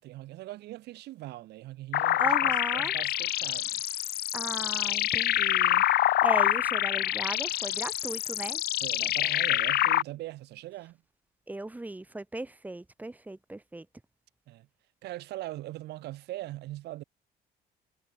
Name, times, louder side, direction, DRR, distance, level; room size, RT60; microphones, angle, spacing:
voice 1, 0.0-3.8 8.8-11.0 14.5-14.7 15.0-17.0, right 16 dB, 80° right, 5.4 m, -41 dB
sound 1, 1.9-10.0, left 14 dB, 70° left, 1.9 m, -26 dB
voice 2, 2.2-2.9 4.3-8.6 11.5-13.9, right 2 dB, 10° right, 1.7 m, -37 dB
cardioid pair, 110°, 17 cm